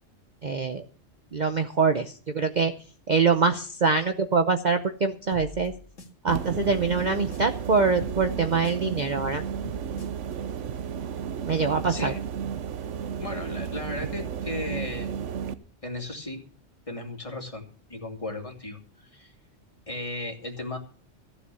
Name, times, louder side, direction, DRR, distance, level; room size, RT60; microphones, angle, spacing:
voice 1, 0.4-0.8 1.3-2.7 3.1-5.7 6.2-9.4 11.5-12.1, right 4 dB, 40° right, 8 dB, 0.8 m, -24 dB
sound 1, 5.3-7.7 8.0-10.3, left 1 dB, 75° left, 2.3 m, -43 dB
sound 2, 6.3-15.5, right 7 dB, 75° right, 1.1 m, -33 dB
voice 2, 13.1-15.1 15.8-16.4 16.9-17.6 17.9-19.3 19.9-20.8, left 2 dB, 25° left, 2 dB, 2.6 m, -35 dB
15.0 x 7.6 x 6.9 m, 0.42 s
omnidirectional pair, 1.3 m